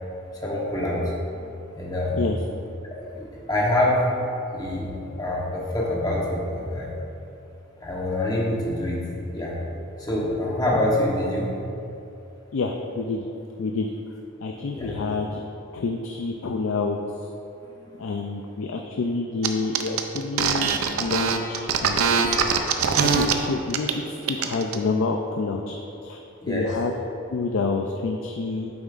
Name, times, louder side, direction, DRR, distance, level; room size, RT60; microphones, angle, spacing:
voice 1, 0.3-1.4 1.7-2.2 2.8-4.2 4.5-4.9 5.2-6.9 7.8-9.0 9.3-9.5 10.0-11.6 14.5-15.1 17.6-18.0 26.4-26.7, left 1 dB, 20° left, -4 dB, 1.0 m, -26 dB
voice 2, 12.5-13.3 13.6-13.9 14.4-15.4 15.7-17.3 18.0-20.7 21.0-22.4 23.0-25.8 26.0-26.2 26.5-26.9 27.3-28.7, left 3 dB, 70° left, 3 dB, 0.4 m, -28 dB
sound 1, 19.4-19.5 19.7-23.3 23.7-23.9 24.2-24.8, right 6 dB, 85° right, 0.5 m, -22 dB
8.8 x 7.0 x 2.5 m, 2.8 s
head